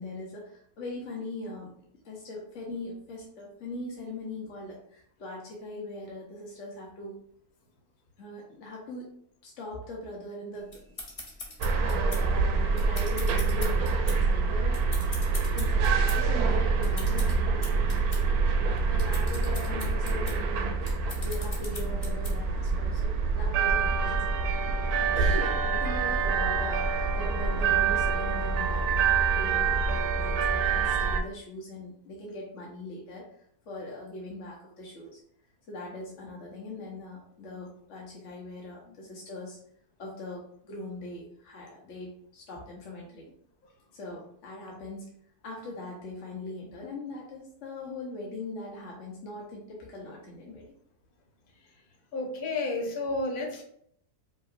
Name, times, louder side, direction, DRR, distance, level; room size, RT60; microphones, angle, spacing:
voice 1, 0.0-7.2 8.2-9.1 9.4-10.8 11.8-14.8 15.5-18.4 18.9-20.9 21.2-24.2 25.1-33.3 33.7-35.2 35.7-39.6 40.0-43.3 43.9-45.1 45.4-50.7, left 2 dB, 55° left, -3 dB, 1.0 m, -40 dB
sound 1, 10.7-22.6, left 2 dB, 30° left, 0.7 m, -43 dB
sound 2, 11.6-31.2, right 4 dB, 75° right, 1.0 m, -26 dB
voice 2, 52.1-53.6, left 2 dB, 70° left, 2 dB, 1.4 m, -31 dB
5.1 x 2.9 x 2.5 m, 0.67 s
omnidirectional pair, 1.7 m